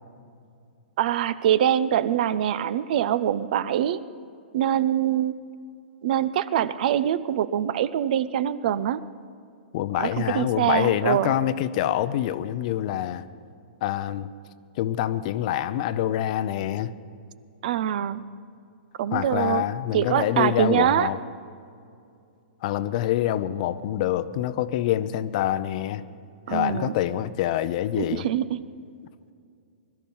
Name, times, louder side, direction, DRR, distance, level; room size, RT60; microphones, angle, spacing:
voice 1, 1.0-4.0 4.5-5.3 6.0-9.0 9.9-11.4 17.6-18.2 19.0-19.6 19.9-21.1 26.5-26.9 28.0-28.6, right 10 dB, 55° right, 0.6 m, -24 dB
voice 2, 9.7-13.2 13.8-14.3 14.8-16.9 19.1-21.2 22.6-26.0 26.5-28.2, left 12 dB, 45° left, 0.6 m, -26 dB
21.0 x 12.5 x 5.5 m
hypercardioid pair, 150°, 6 cm